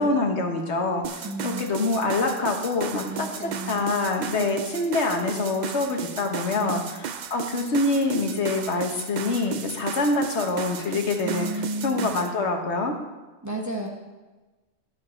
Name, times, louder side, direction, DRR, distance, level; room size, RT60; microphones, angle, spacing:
voice 1, 0.0-11.5 11.8-12.9, left 3 dB, 70° left, 3 dB, 1.4 m, -25 dB
sound 1, 1.0-12.3, right 7 dB, 60° right, 0.5 m, -35 dB
voice 2, 1.2-1.7 3.1-4.0 4.4-4.5 6.5-6.8 11.2-12.1 13.4-13.9, right 1 dB, 15° right, -1 dB, 1.0 m, -33 dB
11.0 x 7.4 x 4.3 m, 1.2 s
omnidirectional pair, 1.2 m